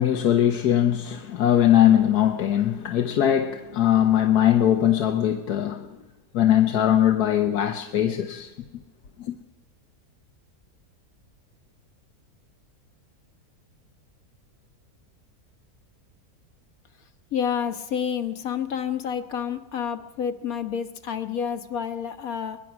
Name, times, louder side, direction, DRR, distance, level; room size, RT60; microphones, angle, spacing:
voice 1, 0.0-5.9 6.3-8.5 9.2-9.3, left 11 dB, 85° left, 1.5 m, -21 dB
voice 2, 17.3-22.6, left 7 dB, 65° left, 1.6 m, -29 dB
22.0 x 21.0 x 6.1 m
omnidirectional pair, 1.6 m